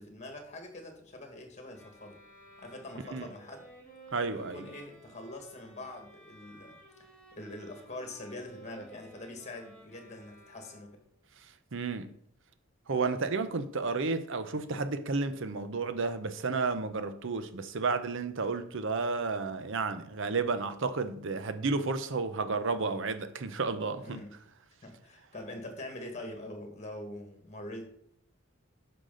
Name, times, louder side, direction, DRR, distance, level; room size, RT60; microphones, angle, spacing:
voice 1, 0.0-2.2 2.6-3.7 4.3-11.0 24.0-24.3 24.8-27.8, left 1 dB, 35° left, 1.8 m, -44 dB
sound 1, 1.7-11.2, right 2 dB, 5° left, 2.4 m, -55 dB
voice 2, 4.1-4.7 11.7-12.2 12.9-24.2, right 4 dB, 65° right, 0.7 m, -32 dB
10.0 x 5.9 x 3.9 m
head